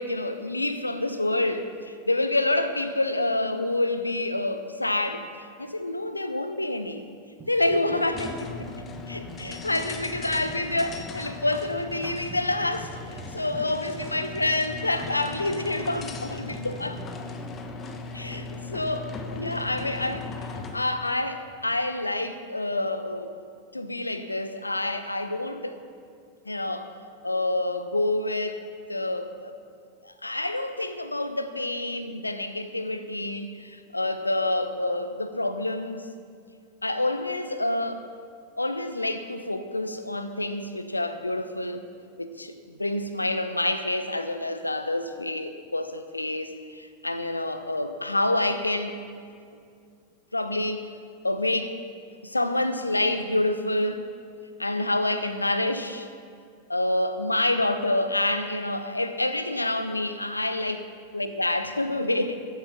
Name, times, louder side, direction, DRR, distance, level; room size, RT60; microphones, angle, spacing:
voice 1, 0.0-7.0 7.5-8.7 9.1-17.0 18.1-20.3 20.7-23.3 23.7-25.8 26.5-26.9 27.2-28.6 28.9-29.5 30.0-36.0 36.8-38.0 38.6-41.8 42.2-42.5 42.8-49.0 50.3-50.9 51.2-51.8 52.2-54.1 54.6-56.1 56.7-60.9 61.1-62.4, left 2 dB, 85° left, 10 dB, 0.8 m, -28 dB
sound 1, 7.4-8.0 8.3-17.1, right 1 dB, 20° right, 2.3 m, -45 dB
sound 2, 8.1-20.9, left 3 dB, 25° left, 1.2 m, -38 dB
15.0 x 9.8 x 5.8 m, 2.3 s
figure-of-eight pair, 90°, 0 cm